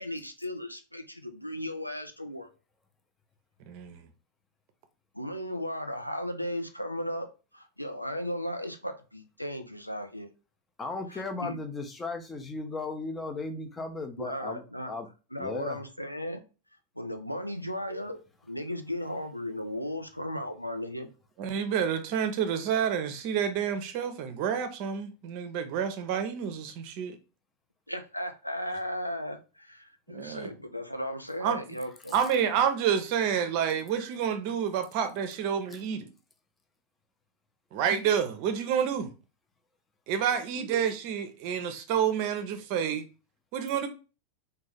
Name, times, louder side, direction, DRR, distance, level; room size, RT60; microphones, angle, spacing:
voice 1, 0.0-2.5 5.1-7.3 7.5-10.3 11.1-11.6 14.2-14.9 15.3-16.4 17.0-21.1 27.9-32.1 42.2-42.3, equal, 90° left, 0.5 m, -36 dB
voice 2, 3.7-4.1 21.4-27.2 30.1-30.5 31.4-31.6 32.1-36.1 37.7-39.1 40.1-43.0 43.5-43.9, right 8 dB, 45° right, 0.6 m, -29 dB
voice 3, 10.8-15.1 15.4-15.8, left 3 dB, 15° left, 0.6 m, -36 dB
3.5 x 2.3 x 3.3 m
figure-of-eight pair, 90°, 0 cm